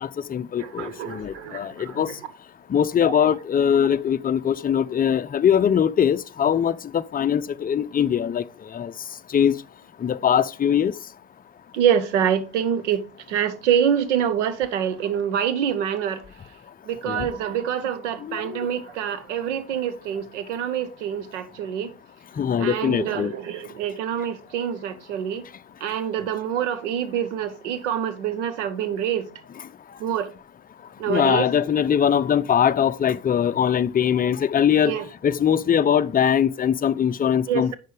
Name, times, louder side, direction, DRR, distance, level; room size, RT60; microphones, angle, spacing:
voice 1, 0.0-2.1 2.7-8.4 8.7-8.9 9.3-9.5 10.0-10.9 17.1-17.3 18.2-18.4 22.4-23.3 31.1-34.9 35.2-37.7, left 8 dB, 25° left, 0.6 m, -21 dB
voice 2, 0.6-2.0 3.0-3.1 11.7-16.2 16.9-21.9 22.6-25.4 25.8-29.3 30.0-30.3 31.0-31.5 34.8-35.1 37.5-37.7, right 9 dB, 90° right, 1.0 m, -26 dB
8.5 x 6.4 x 3.3 m
hypercardioid pair, 75°, 35 cm